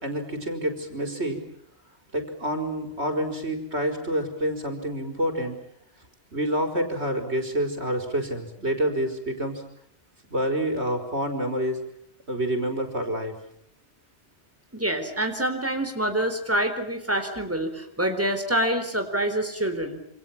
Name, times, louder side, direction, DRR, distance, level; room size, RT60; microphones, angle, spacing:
voice 1, 0.0-1.4 2.1-5.6 6.3-9.6 10.3-11.8 12.3-13.3, right 1 dB, 85° right, 5 dB, 4.9 m, -28 dB
voice 2, 14.7-20.0, right 1 dB, 15° right, 6 dB, 4.3 m, -26 dB
28.0 x 27.0 x 7.4 m, 0.73 s
omnidirectional pair, 1.1 m